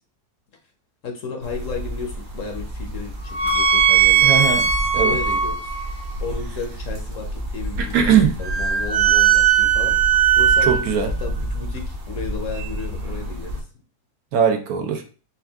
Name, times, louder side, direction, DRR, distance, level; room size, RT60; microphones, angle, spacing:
voice 1, 1.0-4.3 5.0-5.7 6.2-8.1 8.4-10.0 10.4-10.9 11.2-13.6, left 5 dB, 60° left, 3 dB, 1.0 m, -33 dB
sound 1, 1.4-13.6, right 7 dB, 40° right, 0.8 m, -21 dB
voice 2, 4.2-4.7 4.9-5.2 7.8-8.3 10.7-11.1 14.3-15.0, right 8 dB, 70° right, 6 dB, 1.1 m, -19 dB
4.5 x 2.3 x 3.4 m, 0.35 s
omnidirectional pair, 1.7 m